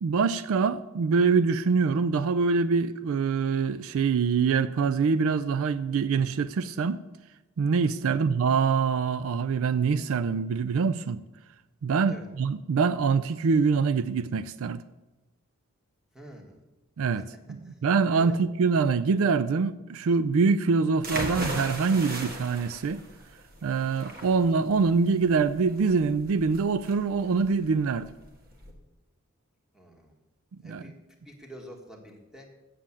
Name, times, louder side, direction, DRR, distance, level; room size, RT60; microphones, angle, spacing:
voice 1, 0.0-7.0 7.6-11.2 11.8-14.8 17.0-17.2 17.5-23.0 23.6-28.1 30.6-30.8, right 5 dB, 65° right, 0.4 m, -24 dB
voice 2, 16.1-16.6 17.1-17.2 17.6-17.8 18.1-18.4 24.1-24.4 29.7-30.2 30.6-32.5, equal, 5° right, 1.7 m, -48 dB
sound 1, 21.0-28.7, right 1 dB, 45° right, 1.7 m, -37 dB
8.4 x 7.6 x 7.3 m
head